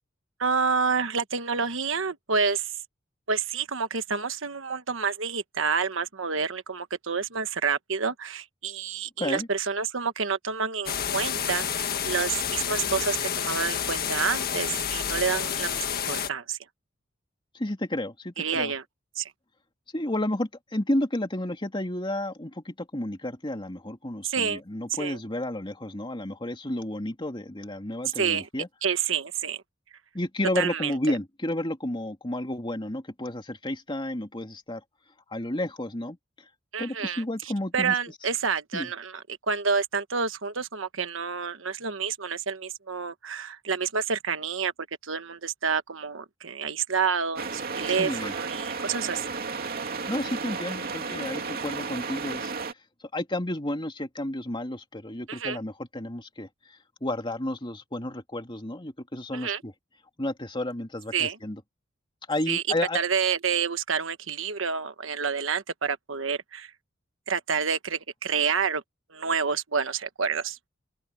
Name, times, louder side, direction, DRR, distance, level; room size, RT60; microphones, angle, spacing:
voice 1, 0.4-2.7 3.3-16.6 18.4-18.8 19.1-19.3 24.2-24.6 25.0-25.2 28.2-28.5 28.8-29.6 30.6-30.9 36.7-37.2 37.7-44.7 45.0-49.3 55.3-55.6 59.3-59.6 61.1-61.4 62.5-62.6 62.9-66.7 67.3-68.8 69.1-70.6, right 5 dB, 70° right, 1.3 m, -28 dB
voice 2, 9.2-9.5 17.5-18.7 19.9-28.7 30.1-34.8 35.3-36.2 36.8-37.9 38.7-38.9 47.9-48.3 50.1-52.5 53.1-56.5 57.0-59.7 60.2-61.6 62.3-63.0, left 1 dB, 25° left, 2.7 m, -31 dB
sound 1, 10.9-16.3, left 8 dB, 50° left, 1.6 m, -29 dB
sound 2, 47.4-52.7, right 4 dB, 50° right, 2.7 m, -33 dB
open air
head